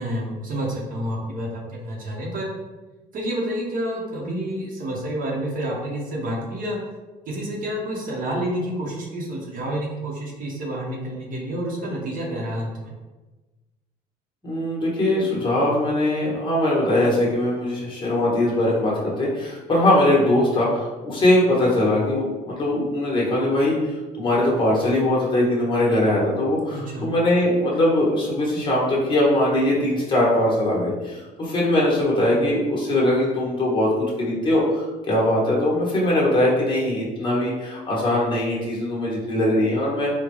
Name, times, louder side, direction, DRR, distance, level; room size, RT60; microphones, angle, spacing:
voice 1, 0.0-2.5 3.1-6.8 7.3-12.9 26.7-27.1, right 1 dB, 55° right, -2 dB, 0.9 m, -29 dB
voice 2, 14.4-23.8 24.1-33.9 34.2-40.1, left 1 dB, 30° left, -5 dB, 1.2 m, -21 dB
3.7 x 2.2 x 3.0 m, 1.2 s
cardioid pair, 110°, 17 cm